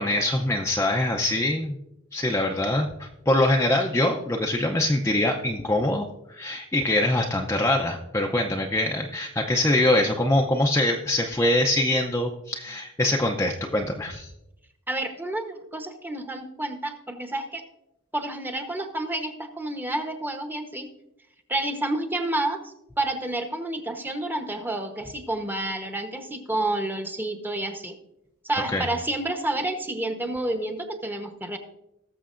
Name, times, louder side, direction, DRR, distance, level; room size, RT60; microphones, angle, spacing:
voice 1, 0.0-1.8 2.1-14.3 28.7-28.9, left 1 dB, 15° left, 1 dB, 0.5 m, -24 dB
voice 2, 14.9-17.6 18.1-20.9 21.5-28.0 28.4-31.6, right 1 dB, 10° right, 5 dB, 0.9 m, -29 dB
19.5 x 6.9 x 2.5 m, 0.88 s
head